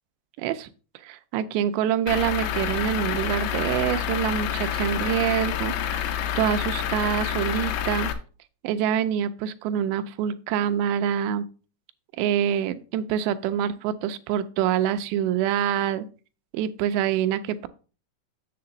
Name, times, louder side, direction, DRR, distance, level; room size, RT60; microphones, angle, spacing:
voice 1, 0.4-0.7 1.0-8.1 8.6-11.5 12.2-16.1 16.5-17.7, right 9 dB, 85° right, 11 dB, 2.8 m, -26 dB
Truck / Idling, 2.1-8.1, left 9 dB, 85° left, 3.0 m, -28 dB
7.3 x 6.8 x 3.9 m, 0.35 s
omnidirectional pair, 4.9 m